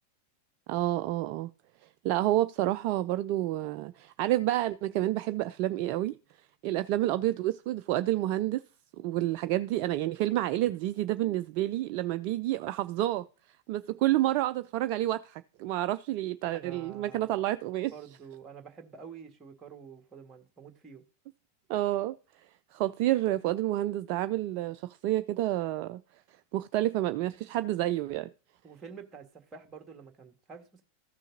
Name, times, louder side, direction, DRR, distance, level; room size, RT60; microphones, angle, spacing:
voice 1, 0.7-1.5 2.0-6.2 6.6-8.6 9.0-13.3 13.7-17.9 21.7-22.2 22.7-26.0 26.5-28.3, right 15 dB, 45° right, 0.3 m, -29 dB
voice 2, 16.5-17.3 17.9-21.0 28.6-30.8, right 6 dB, 20° right, 1.6 m, -48 dB
14.5 x 6.3 x 2.7 m
figure-of-eight pair, 90°, 0 cm